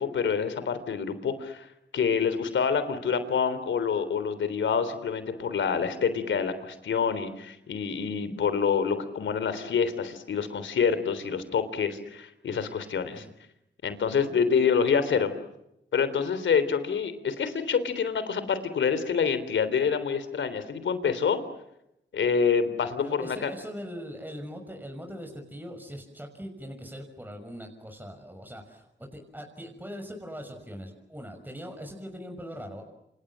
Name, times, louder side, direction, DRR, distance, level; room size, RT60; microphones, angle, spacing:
voice 1, 0.0-1.7 1.9-13.3 13.8-15.3 15.9-21.4 22.1-23.5, left 6 dB, 85° left, 12 dB, 3.6 m, -27 dB
voice 2, 23.0-32.8, equal, 10° right, 4 dB, 6.2 m, -41 dB
28.5 x 27.5 x 7.6 m, 0.83 s
cardioid pair, 60°, 19 cm